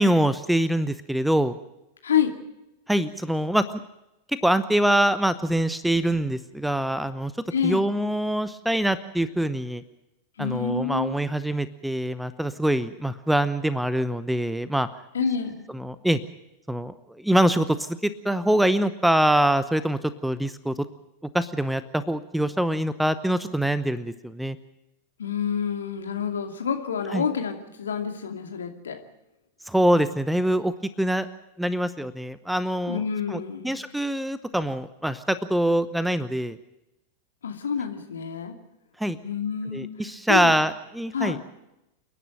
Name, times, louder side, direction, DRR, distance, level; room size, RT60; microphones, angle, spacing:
voice 1, 0.0-1.6 2.9-3.7 4.3-7.3 7.6-9.8 10.4-14.9 15.7-16.2 16.7-20.9 21.3-24.6 27.1-27.3 29.7-31.3 31.6-33.0 33.3-36.6 39.0-39.2 39.7-41.4, right 1 dB, ahead, 15 dB, 0.9 m, -24 dB
voice 2, 2.0-2.3 7.5-7.9 10.4-11.1 15.1-15.6 25.2-29.0 32.9-33.8 37.4-38.5 39.2-39.9 40.3-40.5 41.1-41.4, left 7 dB, 70° left, 5 dB, 2.5 m, -28 dB
28.5 x 11.0 x 9.0 m, 0.91 s
figure-of-eight pair, 90°, 0 cm